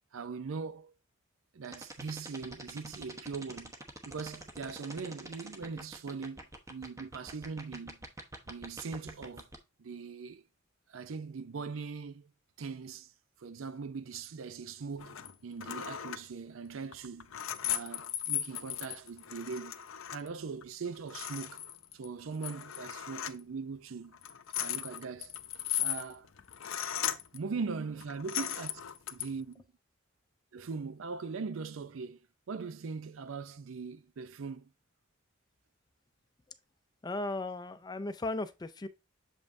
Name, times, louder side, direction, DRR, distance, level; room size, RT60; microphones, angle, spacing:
voice 1, 0.1-0.9 1.5-3.7 4.1-8.0 8.4-9.5 9.8-10.5 10.9-12.3 12.6-13.1 13.4-17.3 17.6-19.8 20.1-21.6 21.9-24.2 24.6-25.3 25.8-26.3 27.3-28.8 29.1-29.7 30.5-32.2 32.5-34.7, right 5 dB, 75° right, 0.5 m, -40 dB
sound 1, 1.6-9.5, right 1 dB, 15° right, 0.9 m, -44 dB
sound 2, 15.0-15.3 15.6-16.3 16.9-20.3 20.6-20.7 21.0-22.1 22.4-23.4 24.1-27.4 28.0-29.3, left 11 dB, 75° left, 0.6 m, -37 dB
voice 2, 37.0-38.9, left 2 dB, 20° left, 0.4 m, -36 dB
7.2 x 5.4 x 2.6 m
head